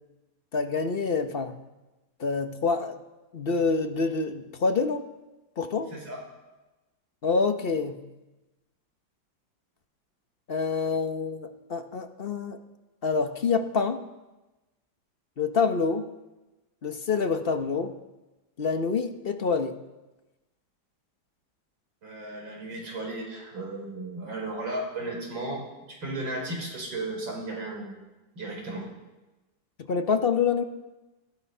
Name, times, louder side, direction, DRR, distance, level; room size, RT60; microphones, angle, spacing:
voice 1, 0.5-1.6 2.2-3.0 3.3-5.0 5.6-6.0 7.2-8.0 10.5-12.6 13.0-14.1 15.4-16.1 16.8-18.0 18.6-19.7 29.9-30.6, left 4 dB, 45° left, 7 dB, 0.8 m, -26 dB
voice 2, 22.0-25.6 26.0-28.0 28.4-28.9, right 2 dB, 90° right, 0 dB, 5.1 m, -35 dB
19.0 x 14.0 x 5.6 m, 1.1 s
omnidirectional pair, 2.1 m